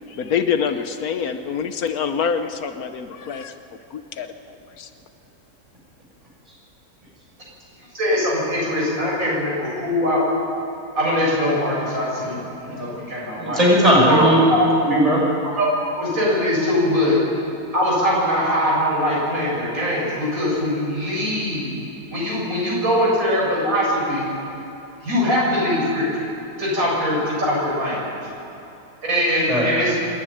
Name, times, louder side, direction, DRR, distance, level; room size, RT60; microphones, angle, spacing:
voice 1, 0.1-3.5 3.9-4.9, left 7 dB, 75° left, 9 dB, 1.4 m, -26 dB
voice 2, 7.9-10.2 11.0-12.4 12.6-13.6 14.0-14.6 15.4-15.7 15.9-17.2 17.7-21.8 22.1-24.3 25.0-26.1 26.6-28.0 29.0-29.9, left 1 dB, 65° right, -5 dB, 7.8 m, -21 dB
voice 3, 13.4-15.2 29.5-29.7, equal, 25° right, -5 dB, 6.3 m, -17 dB
26.5 x 10.5 x 9.9 m, 2.9 s
omnidirectional pair, 1.6 m